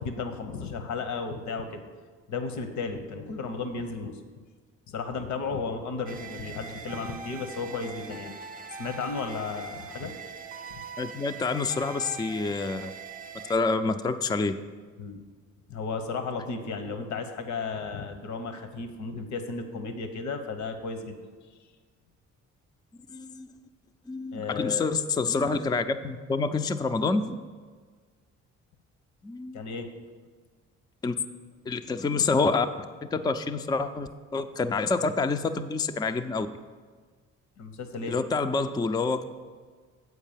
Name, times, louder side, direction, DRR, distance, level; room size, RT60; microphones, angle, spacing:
voice 1, 0.0-1.8 2.3-4.2 4.9-8.3 8.7-10.1 10.7-10.8 15.0-15.2 15.7-21.3 24.3-24.9 29.5-29.9 37.6-38.2, left 4 dB, 70° left, 7 dB, 0.9 m, -34 dB
sound 1, 6.1-13.6, right 4 dB, 30° right, 0.6 m, -42 dB
voice 2, 11.0-12.9 13.5-14.6 23.1-23.5 24.1-27.5 29.2-29.7 31.0-31.1 31.7-32.7 33.0-36.5 38.1-39.2, left 4 dB, 15° left, 9 dB, 0.4 m, -27 dB
8.1 x 4.6 x 7.3 m, 1.5 s
cardioid pair, 90°, 30 cm